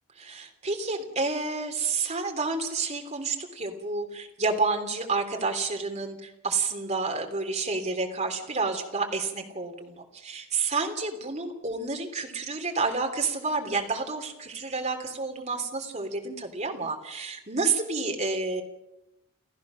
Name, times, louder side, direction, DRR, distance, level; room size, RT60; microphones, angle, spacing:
voice 1, 0.2-18.6, right 4 dB, 35° right, 4 dB, 3.3 m, -30 dB
30.0 x 14.5 x 6.4 m, 0.90 s
head